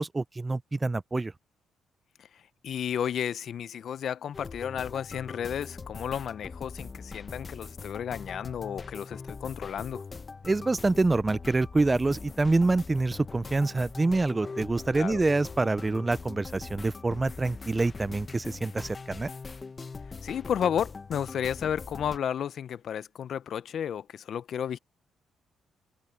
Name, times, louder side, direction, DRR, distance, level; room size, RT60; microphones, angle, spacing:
voice 1, 0.0-1.3 10.5-19.3, right 3 dB, 20° right, 0.4 m, -26 dB
voice 2, 2.2-10.0 15.0-15.2 20.2-24.8, left 9 dB, 60° left, 0.6 m, -32 dB
sound 1, 4.3-22.2, left 4 dB, 30° left, 1.0 m, -42 dB
cardioid pair, 90°, 0 cm